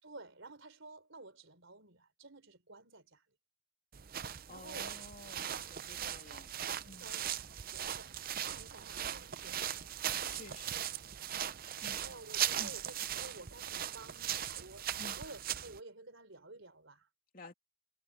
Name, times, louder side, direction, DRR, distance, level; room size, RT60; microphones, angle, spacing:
voice 1, 0.0-3.3 4.5-4.9 6.0-6.4 7.0-10.8 12.0-17.1, right 2 dB, 60° right, 4.0 m, -53 dB
sound 1, 3.9-15.8, right 10 dB, 40° right, 0.6 m, -39 dB
voice 2, 4.3-6.5 6.8-7.2 10.3-10.9 11.8-12.1 12.6-12.8 15.0-15.2 17.3-17.5, left 2 dB, 40° left, 3.0 m, -52 dB
head